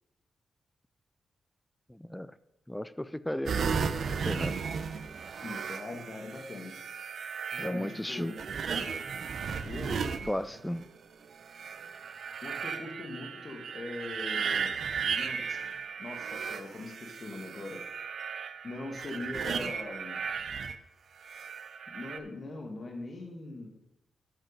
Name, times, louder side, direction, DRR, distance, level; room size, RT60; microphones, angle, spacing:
voice 1, 1.9-2.3 2.7-3.9 4.3-4.6 7.6-8.3 10.3-10.8, left 1 dB, 5° left, 16 dB, 0.3 m, -35 dB
sound 1, 3.5-10.8 11.4-20.8 21.2-22.2, right 6 dB, 65° right, 0.6 m, -35 dB
voice 2, 5.4-6.8 7.5-8.4 9.6-10.1 12.4-14.7 15.1-15.6 16.0-17.8 18.6-20.2 21.9-23.7, left 2 dB, 45° left, 4 dB, 1.6 m, -41 dB
8.9 x 5.1 x 6.4 m, 0.89 s
cardioid pair, 85°, 0 cm